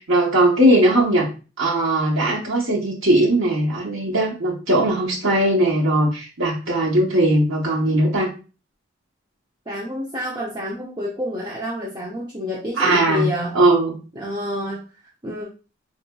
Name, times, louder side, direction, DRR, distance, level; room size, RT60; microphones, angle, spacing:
voice 1, 0.1-1.3 1.6-8.3 12.8-13.3 13.5-14.0, right 1 dB, 90° right, -4 dB, 0.9 m, -19 dB
voice 2, 9.7-13.6 14.2-14.8 15.2-15.5, left 1 dB, 20° right, -4 dB, 0.5 m, -28 dB
3.9 x 2.6 x 2.2 m, 0.34 s
head